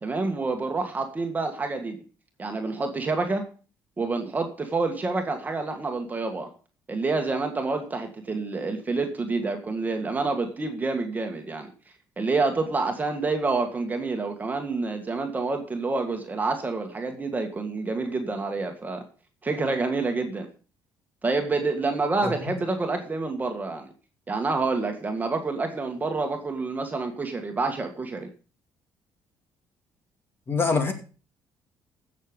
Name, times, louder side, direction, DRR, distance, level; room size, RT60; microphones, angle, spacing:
voice 1, 0.0-2.0 2.4-3.4 4.0-6.5 6.9-11.7 12.2-19.0 19.4-20.5 21.2-23.9 24.3-28.3, right 3 dB, 20° right, 4 dB, 1.8 m, -28 dB
voice 2, 30.5-30.9, left 4 dB, 30° left, 5 dB, 2.5 m, -25 dB
15.0 x 6.7 x 5.2 m, 0.37 s
cardioid pair, 120°, 8 cm